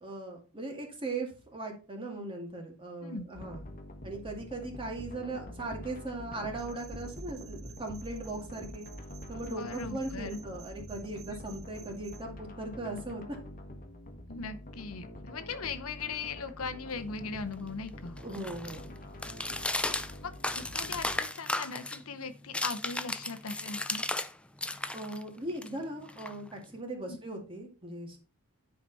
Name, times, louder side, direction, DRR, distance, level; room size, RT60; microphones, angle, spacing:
voice 1, 0.0-3.6 4.0-8.9 9.3-13.4 18.2-18.9 24.9-28.2, right 2 dB, 25° right, 1 dB, 2.2 m, -39 dB
sound 1, 3.3-21.2, left 1 dB, 40° left, 1.3 m, -46 dB
sound 2, 6.6-12.2, right 4 dB, 80° right, 1.3 m, -51 dB
voice 2, 9.4-10.4 14.3-18.2 20.2-24.0 27.1-27.2, left 4 dB, 75° left, 11 dB, 0.9 m, -39 dB
sound 3, 16.9-24.3 24.6-26.8, left 2 dB, 5° left, 0.4 m, -36 dB
10.0 x 5.0 x 4.1 m, 0.34 s
head